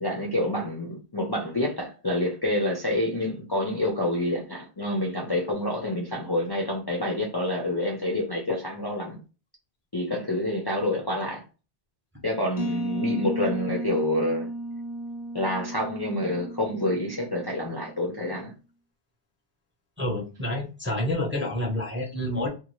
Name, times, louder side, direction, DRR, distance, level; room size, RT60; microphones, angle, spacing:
voice 1, 0.0-9.2 9.9-11.4 12.2-14.5 15.3-18.5, left 1 dB, 30° left, 0.5 m, -28 dB
sound 1, 12.6-18.1, right 1 dB, 75° left, 0.9 m, -34 dB
voice 2, 20.0-22.5, left 1 dB, 15° right, 0.6 m, -28 dB
2.8 x 2.3 x 2.9 m
omnidirectional pair, 1.1 m